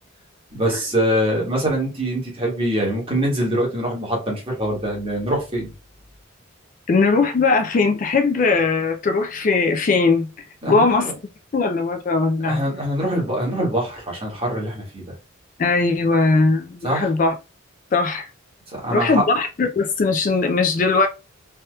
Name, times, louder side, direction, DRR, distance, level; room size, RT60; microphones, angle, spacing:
voice 1, 0.5-5.7 10.6-11.1 12.4-15.1 16.8-17.1 18.7-19.2, right 1 dB, 25° right, 1.3 m, -24 dB
voice 2, 6.9-10.3 10.7-11.1 11.5-12.6 15.6-17.3 17.9-18.3 18.9-21.1, left 3 dB, 40° left, 0.3 m, -19 dB
3.4 x 2.8 x 2.2 m
head